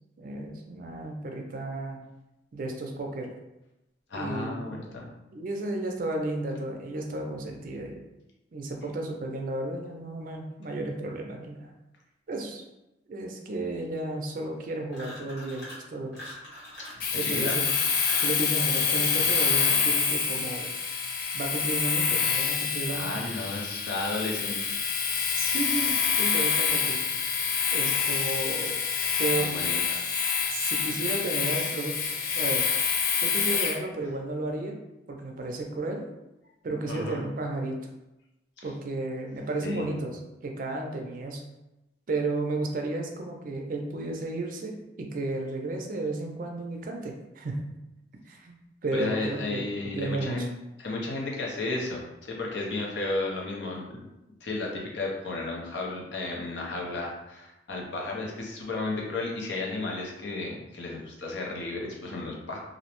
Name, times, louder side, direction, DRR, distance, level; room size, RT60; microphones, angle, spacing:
voice 1, 0.2-2.0 2.5-3.3 4.1-4.8 5.3-8.0 8.5-11.7 12.3-12.6 13.1-16.4 17.1-17.7 18.2-20.8 21.3-23.1 25.3-27.0 27.7-28.8 29.2-29.6 30.5-32.0 32.3-32.7 33.2-34.8 35.1-36.0 36.6-37.8 38.6-41.4 42.1-47.6 48.2-49.7 49.9-50.5, right 2 dB, 50° right, 2 dB, 0.4 m, -33 dB
voice 2, 4.1-5.1 17.2-17.6 22.9-24.7 29.4-30.0 36.9-37.3 38.6-38.7 39.6-40.0 48.9-50.5 50.8-54.0 54.4-62.6, left 2 dB, 90° left, -1 dB, 0.6 m, -33 dB
sound 1, 14.9-15.9 16.1-18.4, left 1 dB, 75° left, 1.2 m, -43 dB
Domestic sounds home sounds, 17.0-33.8, left 6 dB, 50° left, 0.3 m, -27 dB
2.5 x 2.0 x 2.9 m, 0.95 s
head